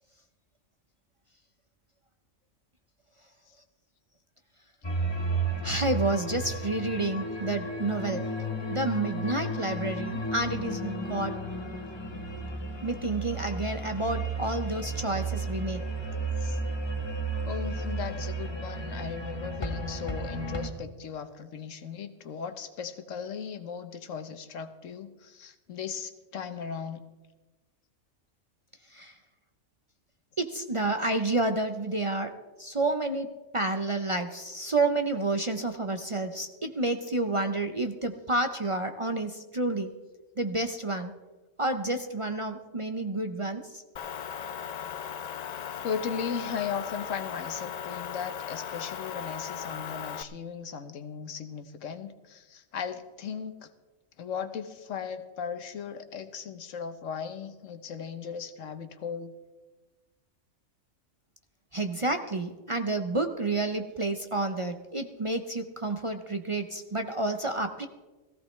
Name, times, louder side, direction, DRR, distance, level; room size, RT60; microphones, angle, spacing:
sound 1, 4.8-20.7, right 2 dB, 25° left, 1.1 m, -33 dB
voice 1, 5.6-8.4 8.7-11.4 12.8-15.8 28.9-29.2 30.4-39.9 40.4-41.1 41.6-43.8 61.7-67.9, right 2 dB, 35° right, 6 dB, 0.5 m, -30 dB
voice 2, 17.5-27.0 45.8-53.7 54.2-59.3, left 6 dB, 85° left, 9 dB, 1.3 m, -37 dB
Motor vehicle (road) / Engine, 44.0-50.2, left 8 dB, 70° left, 0.3 m, -37 dB
17.5 x 15.0 x 3.2 m, 1.2 s
omnidirectional pair, 1.3 m